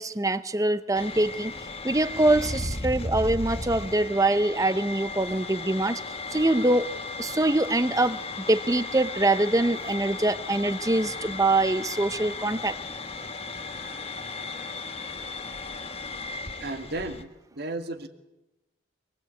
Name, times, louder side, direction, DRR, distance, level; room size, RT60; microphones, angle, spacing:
voice 1, 0.0-1.5 1.8-6.0 6.3-12.8, right 2 dB, 15° right, 13 dB, 0.8 m, -24 dB
sound 1, 0.9-17.2, left 3 dB, 30° left, 1.4 m, -36 dB
voice 2, 16.6-18.1, right 2 dB, 55° right, 7 dB, 2.1 m, -34 dB
23.5 x 23.0 x 8.3 m, 0.95 s
head